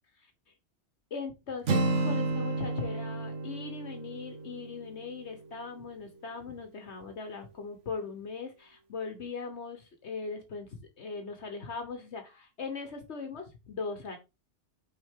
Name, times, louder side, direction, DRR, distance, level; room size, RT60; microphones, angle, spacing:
voice 1, 1.1-14.2, left 4 dB, 70° left, 6 dB, 1.3 m, -39 dB
Acoustic guitar, 1.6-5.6, right 2 dB, 90° right, 1.4 m, -32 dB
6.0 x 4.3 x 3.7 m, 0.25 s
omnidirectional pair, 1.2 m